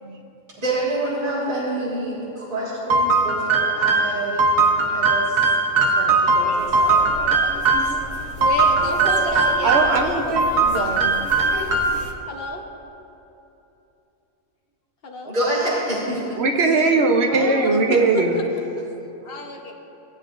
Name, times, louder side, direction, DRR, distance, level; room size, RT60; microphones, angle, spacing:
voice 1, 0.6-4.5 4.9-5.4 5.9-7.0 15.2-16.2, right 1 dB, 40° right, -10 dB, 2.0 m, -27 dB
sound 1, 2.9-8.0 8.4-10.0 10.4-12.1, right 3 dB, 80° right, 1.3 m, -19 dB
voice 2, 6.5-8.0 8.9-11.1 16.4-18.4, right 3 dB, 55° right, 2 dB, 0.9 m, -22 dB
sound 2, 6.6-12.1, left 3 dB, 65° left, 1.0 m, -37 dB
voice 3, 8.4-11.1 12.3-12.6 15.0-15.3 17.3-18.2 19.2-19.7, left 1 dB, 45° left, 1 dB, 1.1 m, -31 dB
16.5 x 8.9 x 2.5 m, 2.9 s
omnidirectional pair, 1.4 m